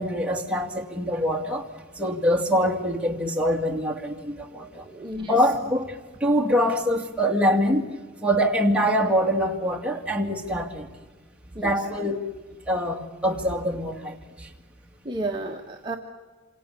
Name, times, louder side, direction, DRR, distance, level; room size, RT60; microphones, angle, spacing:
voice 1, 0.0-1.7 2.0-4.8 5.3-5.9 6.2-7.9 8.2-10.9 11.6-12.3 12.7-14.2, equal, 5° right, 0 dB, 2.4 m, -24 dB
voice 2, 4.8-5.3 11.5-11.7 15.0-16.0, right 2 dB, 20° right, 1 dB, 1.4 m, -32 dB
27.0 x 27.0 x 6.9 m, 1.3 s
head